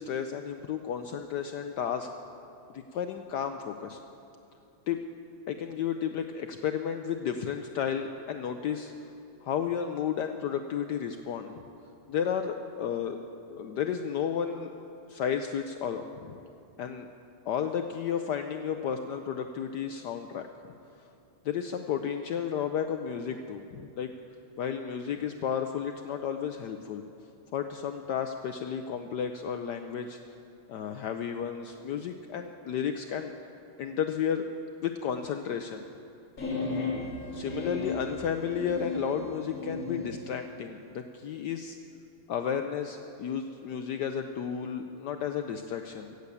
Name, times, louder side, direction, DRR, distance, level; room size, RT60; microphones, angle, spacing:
voice 1, 0.0-2.1 2.7-4.0 4.9-5.0 5.5-8.9 9.4-11.5 12.1-13.2 13.5-14.7 15.1-16.4 16.8-17.1 17.5-20.5 21.4-24.1 24.6-27.0 27.5-30.2 30.7-33.3 33.8-34.5 34.8-35.8 37.3-41.8 42.3-46.1, left 8 dB, 75° left, 7 dB, 0.9 m, -32 dB
sound 1, 36.4-40.1, left 3 dB, 40° left, 2.6 m, -35 dB
15.0 x 8.0 x 8.4 m, 2.7 s
omnidirectional pair, 2.3 m